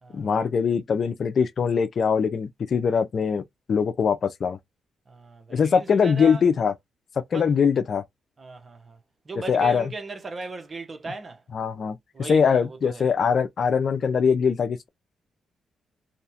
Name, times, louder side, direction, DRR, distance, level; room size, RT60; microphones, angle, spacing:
voice 1, 0.1-3.4 3.7-4.6 5.5-6.7 7.3-8.0 9.5-9.9 11.5-12.0 12.3-14.9, left 6 dB, 60° left, 0.4 m, -22 dB
voice 2, 5.1-6.4 7.3-7.5 8.4-9.0 9.2-11.4 12.1-13.1, right 3 dB, 40° right, 0.9 m, -37 dB
2.7 x 2.2 x 2.8 m
supercardioid pair, 60°, 0 cm